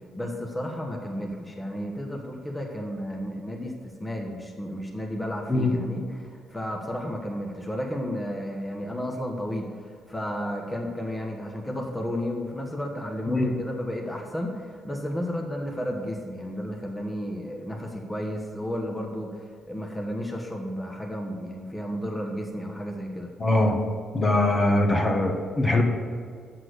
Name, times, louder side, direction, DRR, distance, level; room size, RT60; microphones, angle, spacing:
voice 1, 0.1-23.3, equal, 15° left, 0 dB, 1.3 m, -32 dB
voice 2, 23.4-23.8 24.1-25.8, left 2 dB, 30° left, 2 dB, 1.4 m, -22 dB
7.8 x 6.0 x 6.6 m, 2.2 s
cardioid pair, 90°, 0 cm